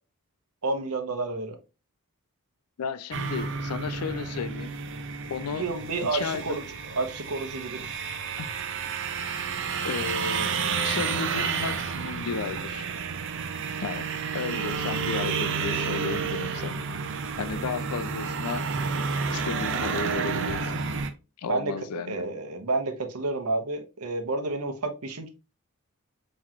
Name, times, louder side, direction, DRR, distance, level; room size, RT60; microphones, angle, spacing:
voice 1, 0.6-1.6 5.5-6.7 6.9-8.0 21.5-25.3, right 3 dB, 80° right, 0.9 m, -30 dB
voice 2, 2.8-4.7 5.3-5.7 6.1-6.6 8.4-8.5 9.8-10.5 10.8-12.9 13.8-14.1 14.3-16.8 17.4-18.7 19.3-20.7 21.4-22.1, left 6 dB, 90° left, 0.4 m, -33 dB
sound 1, 3.1-21.1, right 5 dB, 60° right, 0.6 m, -30 dB
5.8 x 3.1 x 2.4 m
head